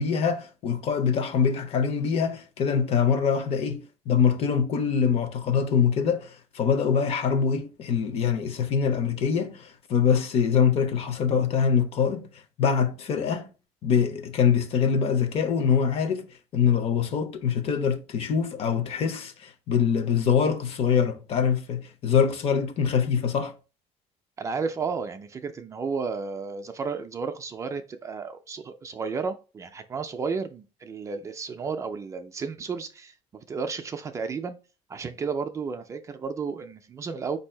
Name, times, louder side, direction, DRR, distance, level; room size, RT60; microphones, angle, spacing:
voice 1, 0.0-12.3 12.6-13.5 13.8-16.3 16.5-23.5, left 7 dB, 50° left, 0.7 m, -24 dB
voice 2, 24.4-33.1 33.5-34.6 34.9-37.4, right 5 dB, 25° right, 0.3 m, -32 dB
4.5 x 2.7 x 4.3 m
cardioid pair, 165°, 13 cm